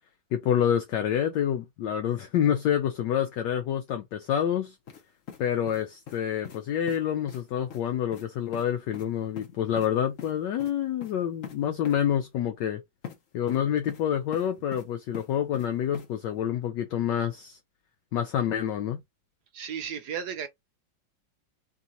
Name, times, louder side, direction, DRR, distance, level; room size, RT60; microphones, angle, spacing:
voice 1, 0.3-4.8 5.4-12.8 13.3-17.6 18.1-19.0, left 9 dB, 75° left, 1.1 m, -27 dB
sound 1, 4.9-5.0 5.3-6.2 6.4-6.6 6.9-7.0 7.3-7.4 7.7-7.8 8.1-8.3 8.5-8.7 8.9-9.1 9.4-9.9 10.2-10.3 10.6-10.7 11.0-11.1 11.4-11.6 11.8-12.0 13.0-13.2 13.5-14.0 14.3-14.8 15.1-15.7 15.9-16.1, left 8 dB, 50° left, 1.0 m, -42 dB
voice 2, 19.5-20.5, right 8 dB, 75° right, 0.9 m, -34 dB
3.4 x 2.8 x 3.7 m
omnidirectional pair, 2.2 m